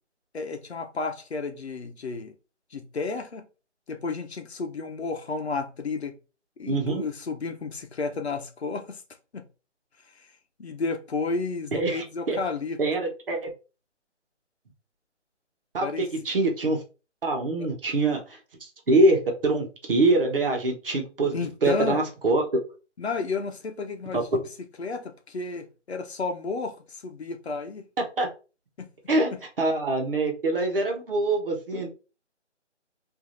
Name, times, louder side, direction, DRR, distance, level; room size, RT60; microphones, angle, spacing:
voice 1, 0.3-2.3 2.7-3.5 3.9-6.2 6.6-9.0 9.3-9.5 10.2-10.3 10.6-12.8 15.8-16.1 17.6-17.7 21.3-22.0 23.0-24.3 24.8-27.9 28.8-28.9 29.3-29.4 31.7-31.9, left 4 dB, 60° left, 0.9 m, -32 dB
voice 2, 6.7-7.0 11.7-12.4 12.8-13.5 15.7-16.8 17.2-22.4 24.1-24.2 28.2-28.3 29.1-29.3 29.6-31.9, right 2 dB, 50° right, 1.2 m, -24 dB
4.6 x 2.8 x 2.6 m
figure-of-eight pair, 165°, 36 cm